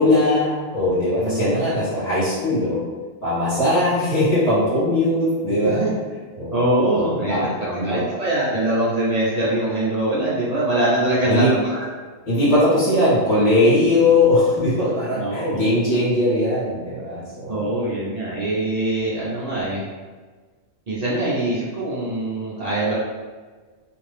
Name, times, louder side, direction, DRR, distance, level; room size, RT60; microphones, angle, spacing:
voice 1, 0.0-2.8 3.2-5.8 6.4-6.6 7.0-8.1 11.2-11.5 12.2-17.6, left 1 dB, 65° left, -10 dB, 1.5 m, -20 dB
voice 2, 1.2-1.7 5.6-5.9 6.5-11.9 15.2-15.6 17.5-19.9 20.9-23.0, right 1 dB, 45° right, -7 dB, 0.5 m, -23 dB
2.8 x 2.5 x 3.3 m, 1.4 s
omnidirectional pair, 1.4 m